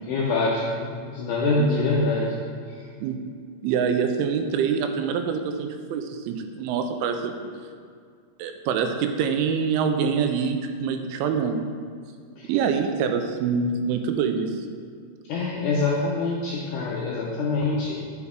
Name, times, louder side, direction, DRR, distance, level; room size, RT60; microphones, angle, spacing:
voice 1, 0.1-2.4 2.7-2.8 12.4-12.5 15.3-18.0, left 3 dB, 85° left, -4 dB, 1.7 m, -25 dB
voice 2, 3.6-7.5 8.4-11.6 12.5-14.7, right 6 dB, 85° right, 6 dB, 2.5 m, -25 dB
8.1 x 5.8 x 3.7 m, 2.1 s
omnidirectional pair, 4.4 m